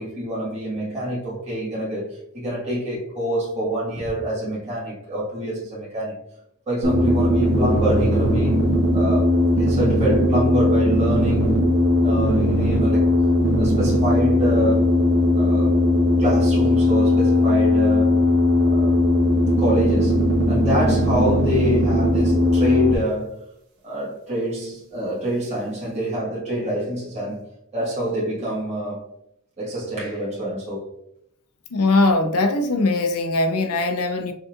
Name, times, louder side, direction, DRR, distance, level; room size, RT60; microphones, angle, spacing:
voice 1, 0.0-6.2 6.7-8.7 8.9-11.6 12.0-13.1 13.6-15.0 15.3-15.8 16.2-18.2 18.6-19.0 19.6-23.4 23.8-27.5 27.7-29.1 29.6-30.9, equal, 30° right, 1.5 m, -26 dB
sound 1, 6.8-22.9, left 1 dB, 70° right, 1.2 m, -18 dB
voice 2, 31.7-34.3, left 2 dB, 85° left, 0.6 m, -20 dB
5.3 x 2.7 x 2.5 m
head